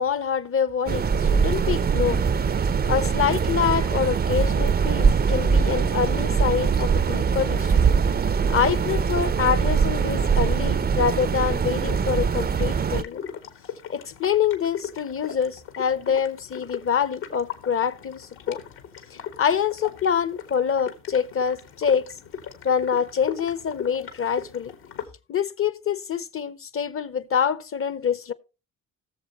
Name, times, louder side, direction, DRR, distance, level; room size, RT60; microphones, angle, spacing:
voice 1, 0.0-2.2 2.9-7.8 8.5-13.2 13.9-18.6 19.1-22.1 22.6-24.7 25.3-28.3, left 7 dB, 30° left, 0.8 m, -25 dB
sound 1, 0.9-13.0, right 6 dB, 25° right, 0.5 m, -22 dB
sound 2, 11.9-25.1, left 8 dB, 65° left, 1.6 m, -39 dB
18.0 x 6.9 x 2.9 m
hypercardioid pair, 45°, 41 cm